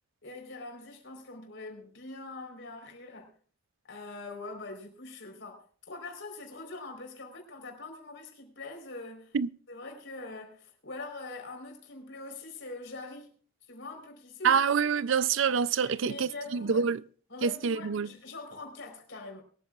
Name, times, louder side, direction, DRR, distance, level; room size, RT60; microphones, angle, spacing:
voice 1, 0.2-3.3 3.9-9.4 9.7-13.3 13.7-14.6 15.8-16.9 17.3-19.4, left 2 dB, 65° left, 4.2 m, -43 dB
voice 2, 14.4-17.0 17.4-18.1, right 6 dB, 75° right, 0.5 m, -26 dB
22.5 x 13.5 x 2.4 m
head